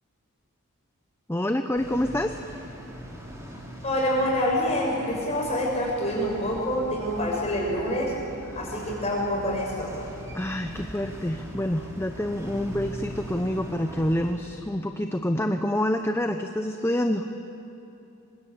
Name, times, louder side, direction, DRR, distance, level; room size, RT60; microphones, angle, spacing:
voice 1, 1.3-2.4 8.5-8.6 10.3-17.3, left 1 dB, 10° left, 6 dB, 0.7 m, -27 dB
sound 1, 1.7-14.3, equal, 15° right, 3.3 m, -41 dB
voice 2, 3.8-8.1 8.5-9.9, equal, 30° left, -2 dB, 6.1 m, -26 dB
25.0 x 20.5 x 8.6 m, 3.0 s
head